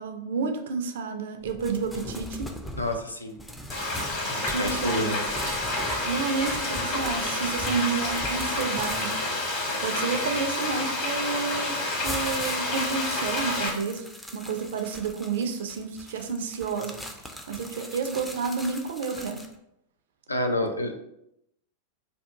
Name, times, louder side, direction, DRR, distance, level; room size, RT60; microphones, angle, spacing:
voice 1, 0.0-2.5 4.5-5.1 6.0-9.2 9.8-14.1 14.3-17.0 17.5-19.5, right 5 dB, 60° right, 6 dB, 0.4 m, -30 dB
sound 1, 1.4-10.9 11.5-19.5, equal, 5° left, 0.4 m, -41 dB
voice 2, 2.7-3.4 4.3-5.2 20.3-20.9, left 1 dB, 80° left, 4 dB, 0.4 m, -29 dB
Frying (food), 3.7-13.7, left 2 dB, 45° left, 1.2 m, -29 dB
2.7 x 2.3 x 3.5 m, 0.80 s
figure-of-eight pair, 90°, 0 cm